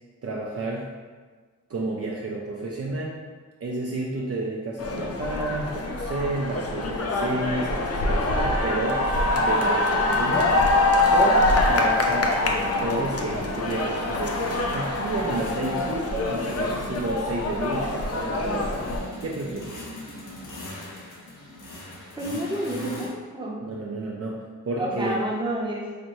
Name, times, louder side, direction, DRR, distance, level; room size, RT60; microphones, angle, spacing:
voice 1, 0.2-0.9 1.7-3.2 3.6-9.0 9.4-10.6 11.1-19.7 23.6-25.2, right 2 dB, 50° right, -3 dB, 0.4 m, -31 dB
sound 1, 4.8-19.0, left 2 dB, 50° left, 0.5 m, -24 dB
sound 2, 9.0-23.1, left 1 dB, 75° left, 0.8 m, -40 dB
voice 2, 22.2-23.6 24.8-25.8, right 1 dB, 15° right, -4 dB, 0.7 m, -29 dB
4.2 x 2.6 x 3.0 m, 1.5 s
wide cardioid pair, 100°, 31 cm